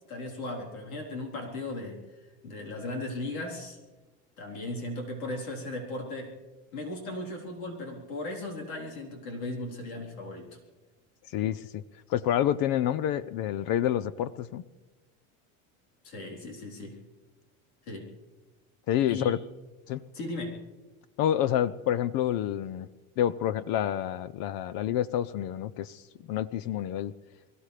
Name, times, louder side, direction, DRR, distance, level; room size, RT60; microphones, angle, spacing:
voice 1, 0.1-3.8 4.4-6.3 6.7-10.6 16.0-17.0 17.8-18.1 19.1-19.3 20.1-20.6, left 2 dB, 90° left, -1 dB, 3.9 m, -37 dB
voice 2, 11.2-11.8 12.1-14.6 18.9-19.4 19.9-20.0 21.2-22.9 23.2-27.1, left 11 dB, 55° left, 16 dB, 0.7 m, -28 dB
24.5 x 15.5 x 3.3 m, 1.2 s
supercardioid pair, 100°, 41 cm